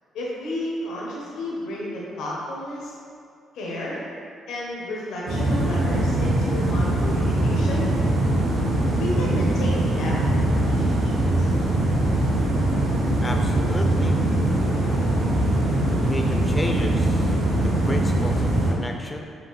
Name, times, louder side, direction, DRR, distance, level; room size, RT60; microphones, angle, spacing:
voice 1, 0.1-2.9 3.5-4.0 4.5-7.9 9.0-11.5, left 1 dB, 85° left, -5 dB, 0.9 m, -32 dB
sound 1, 5.3-18.7, right 1 dB, 75° right, 0.9 m, -22 dB
voice 2, 12.8-14.2 15.9-19.3, left 2 dB, 20° left, 3 dB, 0.3 m, -33 dB
5.2 x 2.5 x 3.6 m, 2.3 s
cardioid pair, 90°, 0 cm